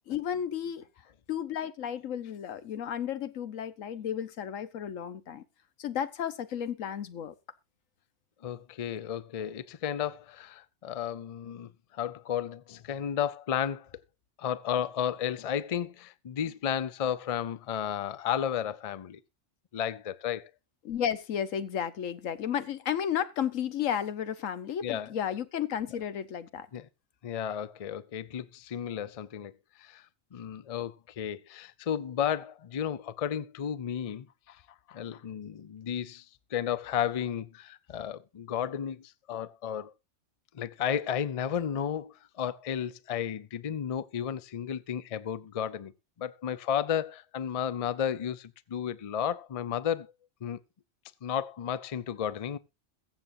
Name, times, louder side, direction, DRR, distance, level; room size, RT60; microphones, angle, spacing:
voice 1, 0.1-0.9 1.3-5.4 5.8-7.3 20.8-26.7, left 9 dB, 90° left, 1.3 m, -33 dB
voice 2, 8.4-13.9 14.4-19.2 19.7-20.5 24.8-25.1 26.7-26.9 27.2-29.5 29.8-30.0 30.3-34.6 34.9-36.2 36.5-39.9 40.5-45.9 46.2-50.1 50.4-50.6 51.2-52.6, left 9 dB, 45° left, 0.5 m, -33 dB
22.0 x 7.4 x 2.6 m
omnidirectional pair, 1.3 m